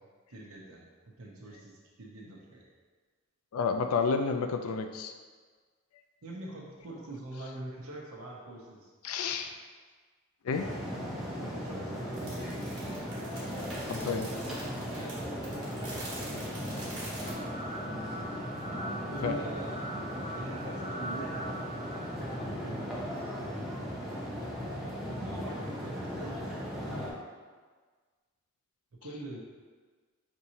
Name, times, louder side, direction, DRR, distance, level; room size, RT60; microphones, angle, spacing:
voice 1, 0.3-0.8 1.2-2.6 6.2-8.9 11.4-12.8 14.9-16.8 19.1-19.7 20.3-22.8 25.0-26.9 29.0-29.4, right 2 dB, 80° right, -2 dB, 0.9 m, -44 dB
voice 2, 3.5-5.1 9.0-9.5 10.4-10.7 13.9-14.3 19.2-19.4, left 5 dB, 80° left, 7 dB, 0.4 m, -30 dB
sound 1, 10.5-27.1, equal, ahead, 0.6 m, -37 dB
sound 2, 12.1-17.3, right 1 dB, 20° right, 1.2 m, -44 dB
sound 3, 17.2-23.3, right 1 dB, 30° left, 0.8 m, -43 dB
5.3 x 2.9 x 2.7 m, 1.5 s
head